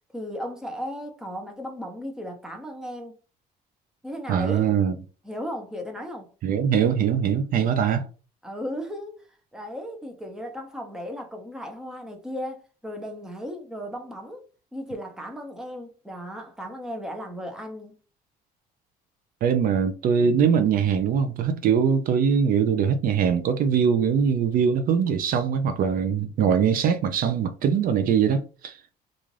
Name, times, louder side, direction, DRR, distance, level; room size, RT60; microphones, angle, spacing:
voice 1, 0.1-3.1 4.0-4.7 5.2-6.3 8.4-9.2 9.5-14.4 14.7-18.0, equal, 5° right, 0.6 m, -35 dB
voice 2, 4.3-4.9 6.4-8.1 19.4-28.8, right 7 dB, 55° right, 0.4 m, -22 dB
2.4 x 2.4 x 3.1 m
cardioid pair, 110°, 17 cm